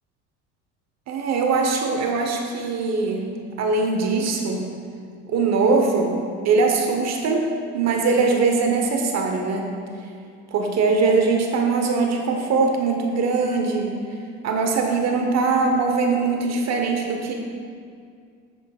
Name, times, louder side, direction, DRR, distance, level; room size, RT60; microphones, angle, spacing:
voice 1, 1.1-3.3 3.6-4.7 5.3-6.2 6.4-7.5 7.7-9.7 10.5-13.9 14.4-17.3, right 4 dB, 50° right, 2 dB, 1.1 m, -21 dB
8.9 x 8.7 x 2.4 m, 2.2 s
hypercardioid pair, 75°, 35 cm